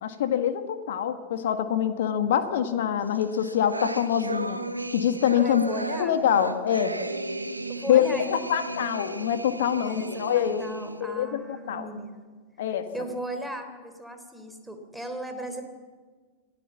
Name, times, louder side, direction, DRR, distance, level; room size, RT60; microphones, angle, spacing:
voice 1, 0.0-4.6 4.9-5.6 6.0-6.9 7.9-10.6 11.0-11.9 12.6-12.9, left 9 dB, 55° left, 9 dB, 1.7 m, -25 dB
sound 1, 3.1-11.0, right 2 dB, 85° right, 1.1 m, -35 dB
voice 2, 5.4-6.2 7.7-8.6 9.8-12.2 12.9-15.6, right 1 dB, 5° right, 5 dB, 3.5 m, -37 dB
27.0 x 17.5 x 7.3 m, 1.5 s
figure-of-eight pair, 90°, 0 cm